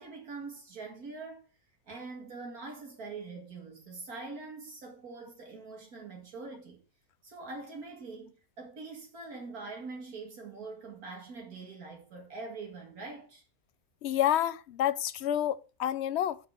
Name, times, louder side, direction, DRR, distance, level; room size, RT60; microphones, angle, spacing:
voice 1, 0.0-1.4 1.9-6.8 7.2-13.4, right 3 dB, 80° right, 2.5 m, -43 dB
voice 2, 14.0-16.4, left 11 dB, 60° left, 0.8 m, -29 dB
6.9 x 6.0 x 6.7 m
omnidirectional pair, 1.5 m